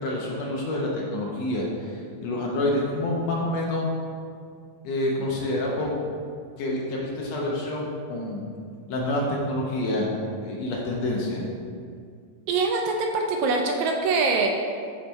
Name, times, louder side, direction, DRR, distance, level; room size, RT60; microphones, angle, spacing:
voice 1, 0.0-3.9 4.8-5.9 6.6-8.5 8.9-10.1 10.4-11.4, left 1 dB, 70° left, -3 dB, 1.8 m, -27 dB
voice 2, 12.5-14.5, right 4 dB, 80° right, 2 dB, 1.8 m, -23 dB
8.8 x 4.1 x 3.4 m, 2.2 s
omnidirectional pair, 3.5 m